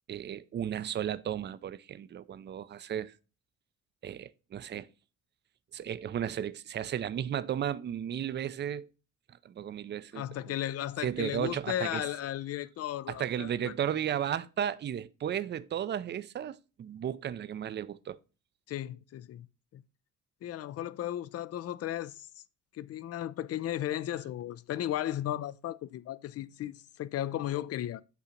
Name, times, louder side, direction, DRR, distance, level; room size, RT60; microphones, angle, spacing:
voice 1, 0.1-3.1 4.0-4.9 5.7-8.9 9.4-10.5 11.0-12.1 13.1-18.2, right 9 dB, 35° right, 0.4 m, -34 dB
voice 2, 10.1-13.7 18.7-19.5 19.7-19.8 20.4-22.4 22.7-28.0, left 12 dB, 55° left, 0.4 m, -35 dB
8.3 x 2.8 x 5.0 m
cardioid pair, 90°, 30 cm